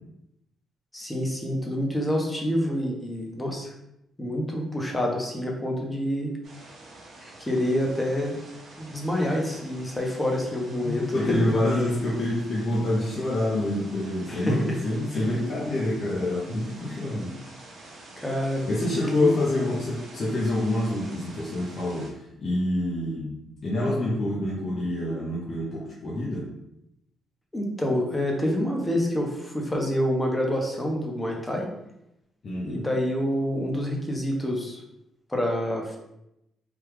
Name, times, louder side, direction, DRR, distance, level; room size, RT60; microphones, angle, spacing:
voice 1, 0.9-3.7 4.2-6.3 7.2-8.4 8.8-11.5 14.3-14.8 15.1-15.3 18.2-18.6 18.9-19.3 27.5-31.7 32.6-34.8 35.3-36.0, equal, 15° left, 0 dB, 0.8 m, -27 dB
sound 1, 6.4-22.1, right 2 dB, 65° right, 0.9 m, -47 dB
voice 2, 10.8-17.3 18.7-26.5 32.4-32.9, left 1 dB, 45° left, -6 dB, 0.8 m, -27 dB
3.5 x 2.3 x 3.1 m, 0.84 s
cardioid pair, 90°, 0 cm